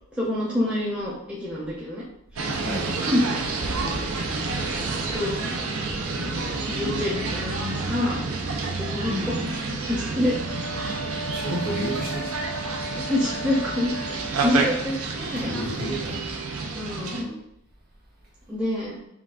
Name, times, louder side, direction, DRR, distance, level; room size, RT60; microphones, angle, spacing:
voice 1, 0.1-2.0 2.3-2.4 3.0-3.3 4.7-4.8 5.1-5.5 6.7-8.3 8.8-10.4 12.9-15.5 16.8-17.3 18.5-19.0, left 1 dB, 5° right, -7 dB, 0.6 m, -27 dB
sound 1, 2.4-17.2, right 3 dB, 80° right, 0.6 m, -29 dB
voice 2, 2.6-3.0 9.0-9.3 11.3-12.3 15.4-16.4, right 1 dB, 45° right, -5 dB, 1.3 m, -31 dB
sound 2, 10.4-14.4, equal, 60° left, 0.5 m, -36 dB
5.6 x 2.3 x 2.4 m, 0.80 s
head